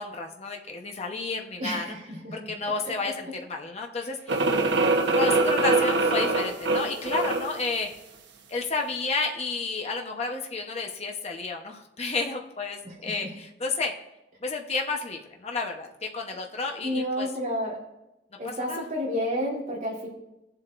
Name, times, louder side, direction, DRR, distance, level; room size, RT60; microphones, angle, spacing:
voice 1, 0.0-1.9 2.3-4.5 5.1-7.9 8.5-13.9 14.4-17.3 18.4-18.8, left 3 dB, 35° left, 2 dB, 0.9 m, -31 dB
voice 2, 1.6-2.5 12.8-13.3 16.8-17.8 18.4-20.1, equal, 45° right, -5 dB, 3.1 m, -31 dB
sound 1, 4.3-7.6, right 2 dB, 75° right, 1.1 m, -23 dB
17.0 x 7.7 x 2.6 m, 0.93 s
head